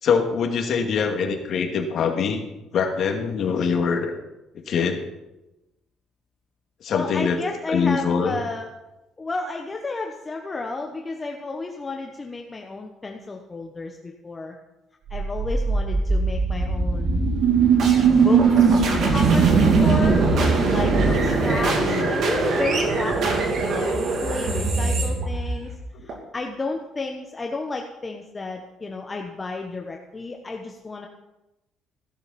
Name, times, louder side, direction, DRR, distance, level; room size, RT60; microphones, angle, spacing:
voice 1, 0.0-2.4 2.7-4.1 4.7-5.0 6.8-7.4 7.7-8.4 21.8-22.1, left 6 dB, 50° left, 3 dB, 2.3 m, -23 dB
voice 2, 6.9-8.7 9.2-14.5 15.1-17.3 18.1-18.8 19.1-20.2 20.7-25.7 26.0-31.1, left 3 dB, 20° left, 2 dB, 1.2 m, -32 dB
sound 1, 15.1-26.1, right 4 dB, 55° right, 2.8 m, -20 dB
16.5 x 12.0 x 4.3 m, 0.99 s
cardioid pair, 130°, 0 cm